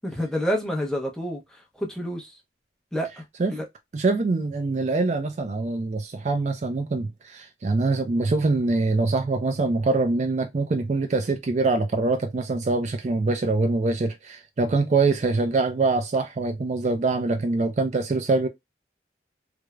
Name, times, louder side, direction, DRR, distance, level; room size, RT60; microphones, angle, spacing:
voice 1, 0.0-2.4 2.9-3.6, equal, 5° left, 0.6 m, -29 dB
voice 2, 3.9-18.5, right 3 dB, 40° right, 0.3 m, -24 dB
3.1 x 2.0 x 2.2 m
head